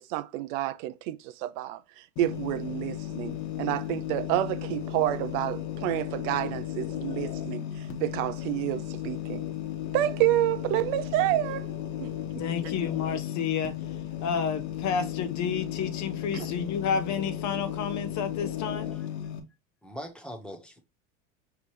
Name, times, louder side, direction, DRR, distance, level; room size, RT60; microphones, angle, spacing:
voice 1, 0.0-1.8 2.2-7.7 8.0-9.4 9.9-11.7 12.0-12.4 16.3-16.5, right 15 dB, 65° right, 0.5 m, -29 dB
sound 1, 2.2-19.4, left 11 dB, 65° left, 1.4 m, -35 dB
voice 2, 12.4-13.7 14.2-18.9, left 6 dB, 40° left, 0.7 m, -30 dB
voice 3, 18.9-19.3 19.8-20.8, equal, ahead, 1.3 m, -42 dB
5.0 x 3.4 x 3.0 m
supercardioid pair, 100°, 43 cm